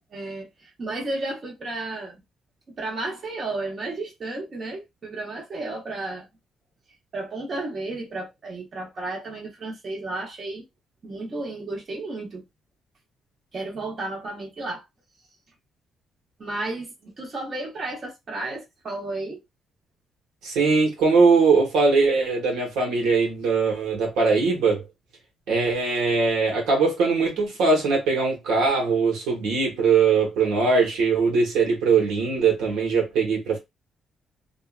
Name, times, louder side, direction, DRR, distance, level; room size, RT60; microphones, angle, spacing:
voice 1, 0.1-2.2 2.7-6.3 7.1-10.6 11.0-12.4 13.5-14.8 16.4-19.4, right 2 dB, 45° right, 1.1 m, -33 dB
voice 2, 20.4-24.8 25.5-33.6, right 4 dB, 90° right, 1.2 m, -21 dB
2.7 x 2.3 x 2.4 m
cardioid pair, 90°, 0 cm